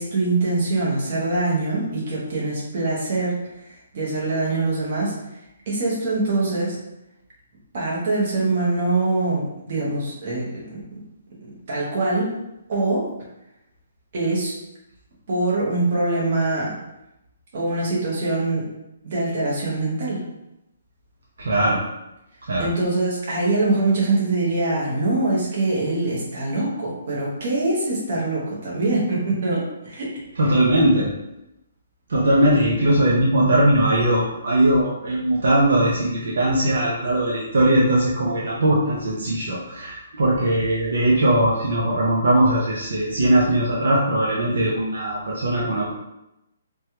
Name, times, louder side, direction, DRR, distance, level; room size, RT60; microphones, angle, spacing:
voice 1, 0.0-3.4 3.9-5.1 5.7-6.8 7.7-10.8 11.7-12.3 12.7-13.1 14.1-14.5 15.3-16.8 17.5-18.6 19.0-20.2 22.6-30.1, right 2 dB, 40° right, -5 dB, 0.9 m, -23 dB
voice 2, 21.4-21.8 22.5-22.7 30.4-31.1 32.1-45.9, right 1 dB, 65° right, -4 dB, 0.6 m, -20 dB
3.2 x 2.3 x 2.8 m, 0.89 s
hypercardioid pair, 175°, 0 cm